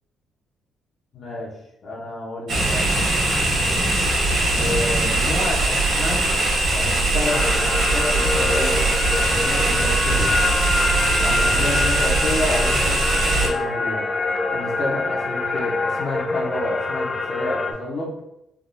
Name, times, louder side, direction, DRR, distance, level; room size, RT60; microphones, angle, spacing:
voice 1, 1.1-1.5 1.8-2.9 4.5-6.3 6.7-10.4 11.2-14.1 14.5-18.1, left 2 dB, 55° left, -4 dB, 0.7 m, -30 dB
sound 1, 2.5-13.5, right 2 dB, 75° right, 1.4 m, -21 dB
sound 2, 7.3-17.7, left 3 dB, 30° left, 0.4 m, -25 dB
3.5 x 2.4 x 2.5 m, 0.83 s
cardioid pair, 90°, 0 cm